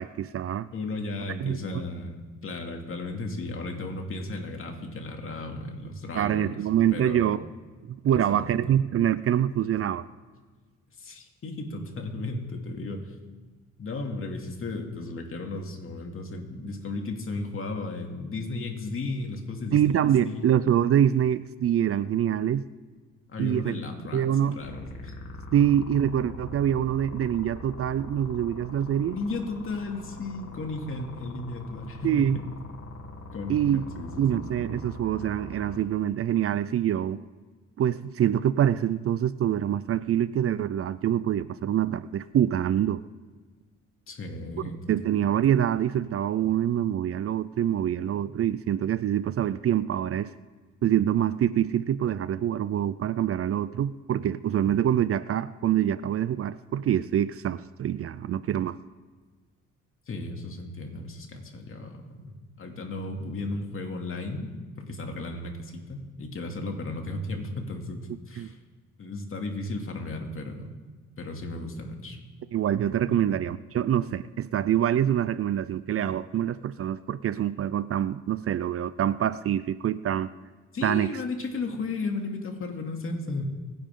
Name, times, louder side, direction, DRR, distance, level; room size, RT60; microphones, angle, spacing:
voice 1, 0.0-0.7 1.4-1.6 6.1-7.4 7.9-10.1 19.7-22.6 23.4-23.7 24.1-24.6 25.5-29.2 32.0-32.4 33.5-33.8 34.2-37.2 37.8-43.0 44.9-50.3 50.8-58.8 68.4-68.5 72.5-80.3 80.8-81.1, right 10 dB, 50° right, 16 dB, 0.5 m, -25 dB
voice 2, 0.7-6.6 6.9-7.3 8.0-8.6 11.0-13.1 13.8-20.5 23.3-25.1 25.6-25.7 29.1-32.5 33.3-34.4 44.1-45.3 60.1-62.3 62.6-64.5 64.8-68.6 69.0-70.7 71.2-72.2 73.0-73.4 80.7-83.4, left 2 dB, 45° left, 2 dB, 2.6 m, -35 dB
sound 1, 24.6-35.8, left 2 dB, 60° left, 3.0 m, -42 dB
24.5 x 10.5 x 3.8 m, 1.4 s
cardioid pair, 90°, 30 cm